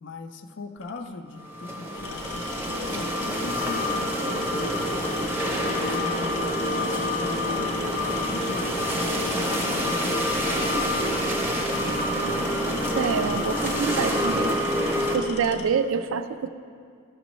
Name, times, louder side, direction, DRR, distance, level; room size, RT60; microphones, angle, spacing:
voice 1, 0.0-5.0 5.6-7.8 8.3-11.0, left 3 dB, 55° left, 8 dB, 0.4 m, -39 dB
Tools, 0.8-1.1 1.9-15.7, left 4 dB, 85° left, 0.8 m, -40 dB
sound 1, 1.4-15.2, equal, 10° right, 0.6 m, -27 dB
voice 2, 13.0-14.5 15.0-16.5, right 6 dB, 65° right, 10 dB, 0.4 m, -26 dB
13.0 x 6.0 x 3.1 m, 2.2 s
head